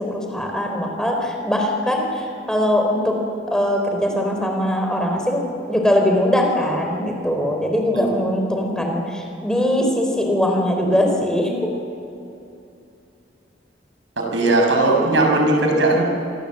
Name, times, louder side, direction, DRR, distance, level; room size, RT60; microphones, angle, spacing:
voice 1, 0.0-3.2 3.5-11.7, left 1 dB, 5° left, 2 dB, 3.9 m, -21 dB
voice 2, 14.2-16.0, right 2 dB, 85° right, 1 dB, 6.6 m, -18 dB
26.5 x 25.5 x 7.7 m, 2.7 s
head